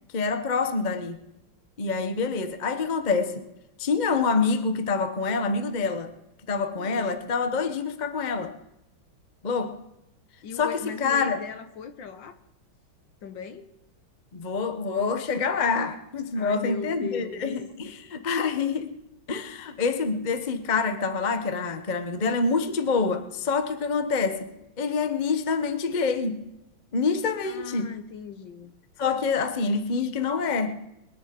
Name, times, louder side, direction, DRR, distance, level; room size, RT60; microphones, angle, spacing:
voice 1, 0.1-1.2 1.8-3.5 3.8-6.1 6.5-8.5 9.4-9.8 10.6-11.4 14.3-18.9 19.3-24.5 24.8-26.4 26.9-27.9 29.0-30.8, left 4 dB, 30° left, 0.8 m, -26 dB
voice 2, 6.8-7.1 10.4-12.4 13.2-13.7 16.3-17.4 27.4-28.7, left 7 dB, 65° left, 1.7 m, -38 dB
22.0 x 9.9 x 5.2 m
omnidirectional pair, 2.3 m